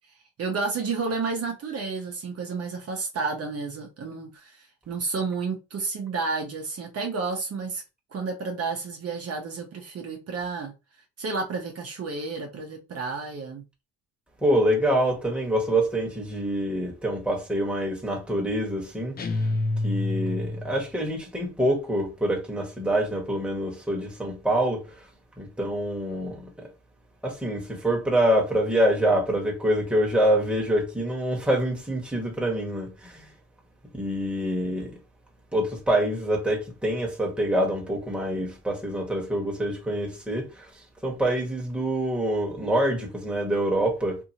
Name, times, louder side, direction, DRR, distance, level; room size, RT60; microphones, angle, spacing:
voice 1, 0.4-7.8 8.1-10.7 11.2-13.6, right 4 dB, 50° right, 0.8 m, -31 dB
voice 2, 14.4-19.1 19.8-24.9 25.4-26.7 27.2-33.3 33.9-34.9 35.5-40.7 41.0-44.2, right 1 dB, 5° right, 1.2 m, -26 dB
sound 1, 19.2-20.9, left 2 dB, 30° left, 0.6 m, -27 dB
2.7 x 2.6 x 2.8 m
cardioid pair, 90°, 30 cm